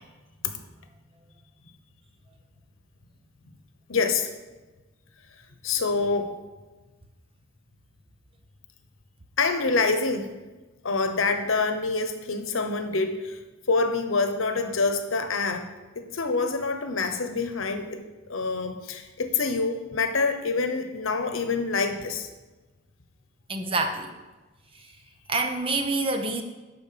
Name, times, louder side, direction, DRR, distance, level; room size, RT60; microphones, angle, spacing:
voice 1, 3.9-4.3 5.6-6.3 9.4-10.3 10.8-13.4 13.7-15.7 16.0-18.0 18.3-22.3, left 4 dB, 90° left, 7 dB, 1.0 m, -26 dB
voice 2, 23.5-24.1 24.7-24.9 25.3-26.4, right 2 dB, 25° right, 5 dB, 0.9 m, -27 dB
11.5 x 4.4 x 6.8 m, 1.2 s
head